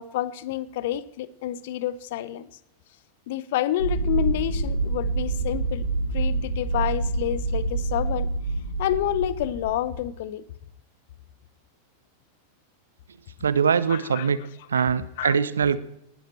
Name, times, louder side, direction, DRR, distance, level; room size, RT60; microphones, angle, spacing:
voice 1, 0.0-2.5 3.3-5.8 6.1-8.3 8.8-10.4 13.9-14.3 14.7-14.8 15.2-15.3, left 13 dB, 55° left, 18 dB, 0.9 m, -28 dB
sound 1, 3.8-10.0, right 3 dB, 85° left, 2.4 m, -27 dB
voice 2, 13.4-14.4 14.7-15.8, right 6 dB, 70° right, 17 dB, 0.9 m, -22 dB
19.5 x 12.0 x 4.5 m, 0.76 s
figure-of-eight pair, 90°, 0 cm